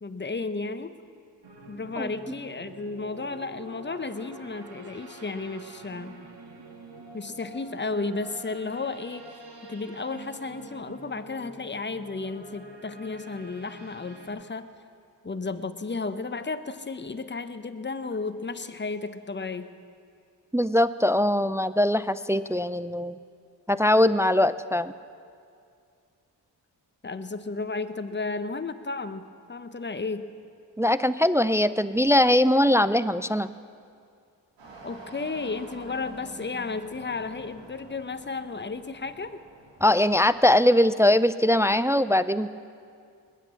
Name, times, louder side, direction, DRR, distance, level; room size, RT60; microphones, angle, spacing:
voice 1, 0.0-0.9 1.7-6.1 7.1-9.4 9.7-14.7 15.2-19.7 27.0-30.3 34.8-39.4, left 3 dB, 25° left, 11 dB, 1.0 m, -33 dB
sound 1, 1.4-14.3, right 1 dB, 60° right, 2.3 m, -46 dB
voice 2, 20.5-23.2 23.7-24.9 30.8-33.5 39.8-42.5, left 1 dB, 5° right, 14 dB, 0.4 m, -21 dB
sound 2, 34.6-40.4, right 2 dB, 80° right, 3.8 m, -47 dB
20.0 x 8.5 x 7.1 m, 2.4 s
supercardioid pair, 45°, 43 cm